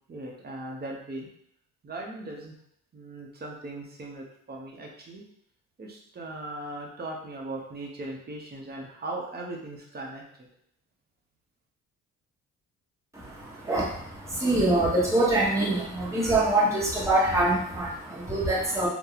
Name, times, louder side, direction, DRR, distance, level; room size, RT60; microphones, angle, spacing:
voice 1, 0.1-1.3 1.8-2.5 2.9-5.2 5.8-10.5, right 2 dB, 30° right, -1 dB, 0.8 m, -38 dB
voice 2, 13.1-18.9, right 2 dB, 10° right, -6 dB, 1.2 m, -25 dB
2.7 x 2.2 x 3.9 m, 0.71 s
cardioid pair, 90°, 30 cm